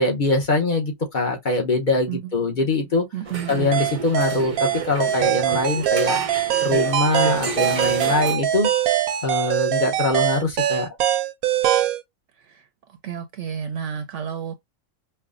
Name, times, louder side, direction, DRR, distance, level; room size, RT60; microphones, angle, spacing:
voice 1, 0.0-3.0 3.5-6.2 6.6-8.7 9.2-10.9, left 2 dB, 40° left, 0.8 m, -23 dB
voice 2, 3.1-3.7 12.4-12.6 13.0-14.6, right 8 dB, 70° right, 0.8 m, -31 dB
sound 1, 3.2-8.4, right 4 dB, 40° right, 0.5 m, -32 dB
sound 2, 3.7-12.0, right 11 dB, 90° right, 1.1 m, -22 dB
5.5 x 2.1 x 2.4 m
omnidirectional pair, 1.4 m